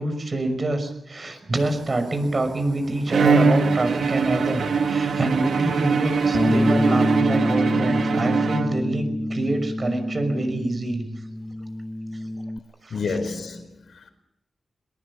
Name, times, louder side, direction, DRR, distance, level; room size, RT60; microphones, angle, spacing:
voice 1, 0.0-11.1 12.1-12.2 12.8-13.3, right 2 dB, 40° right, 5.7 m, -26 dB
Fire, 1.5-7.2, right 3 dB, 75° right, 5.2 m, -43 dB
Bowed string instrument, 3.1-9.1, right 5 dB, 90° right, 2.0 m, -22 dB
Bass guitar, 6.3-12.6, left 1 dB, 20° left, 1.2 m, -26 dB
voice 2, 12.9-14.1, left 4 dB, 85° left, 4.7 m, -30 dB
21.5 x 21.5 x 7.4 m
wide cardioid pair, 80°, 0 cm